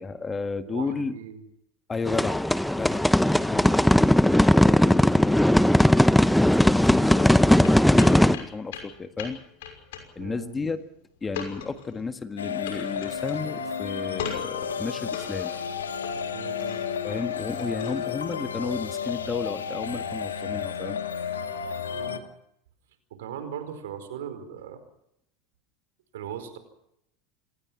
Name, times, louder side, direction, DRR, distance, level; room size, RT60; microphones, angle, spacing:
voice 1, 0.0-1.1 1.9-3.1 3.4-9.4 10.1-10.8 11.2-15.5 17.0-21.0, left 4 dB, 20° left, 9 dB, 1.7 m, -33 dB
voice 2, 0.6-1.4 10.2-10.6 16.3-16.8 21.9-22.2 23.1-24.8 26.1-26.6, right 9 dB, 75° right, 9 dB, 4.6 m, -39 dB
sound 1, 2.1-8.4, left 1 dB, 5° left, 1.0 m, -18 dB
sound 2, 7.6-18.1, left 7 dB, 70° left, 6.0 m, -40 dB
sound 3, 12.4-22.2, left 7 dB, 85° left, 2.0 m, -32 dB
27.5 x 19.0 x 6.1 m, 0.77 s
hypercardioid pair, 85°, 0 cm